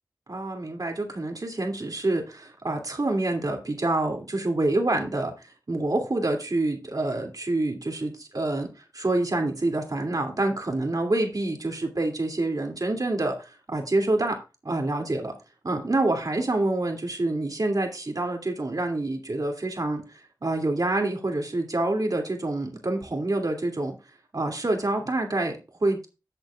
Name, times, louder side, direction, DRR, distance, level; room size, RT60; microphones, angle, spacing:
voice 1, 0.3-5.3 5.7-8.7 8.9-14.4 14.6-15.3 15.6-23.9 24.3-26.1, right 2 dB, 60° right, 3 dB, 2.6 m, -27 dB
14.0 x 7.9 x 2.4 m, 0.29 s
cardioid pair, 40°, 7 cm